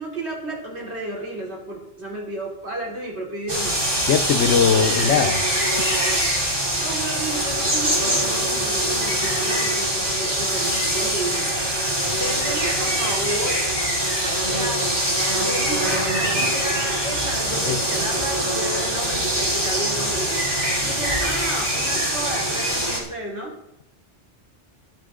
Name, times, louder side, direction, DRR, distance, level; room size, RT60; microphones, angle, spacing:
voice 1, 0.0-4.0 4.6-5.2 6.8-11.5 12.1-13.6 14.5-14.9 15.3-23.6, right 1 dB, 70° right, -3 dB, 3.5 m, -32 dB
sound 1, 3.5-23.0, right 1 dB, 20° right, 3.0 m, -23 dB
voice 2, 4.1-5.5 5.8-6.1 17.7-17.8 20.5-20.6, left 7 dB, 90° left, 9 dB, 1.1 m, -21 dB
21.5 x 7.7 x 3.8 m, 0.82 s
omnidirectional pair, 1.2 m